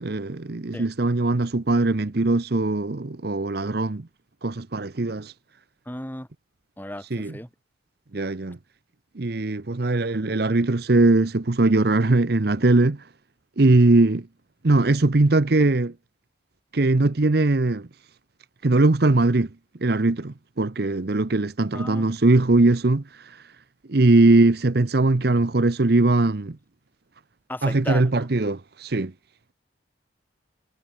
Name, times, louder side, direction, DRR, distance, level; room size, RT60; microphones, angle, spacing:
voice 1, 0.0-4.1 4.4-5.3 7.1-7.3 8.1-8.6 9.2-13.0 13.6-14.2 14.6-15.9 16.7-17.9 18.6-19.5 19.8-23.0 23.9-26.6 27.6-29.1, right 2 dB, 55° right, 0.8 m, -20 dB
voice 2, 5.9-6.3 6.8-7.5 21.7-22.1 27.5-28.1, left 1 dB, 10° left, 2.5 m, -35 dB
head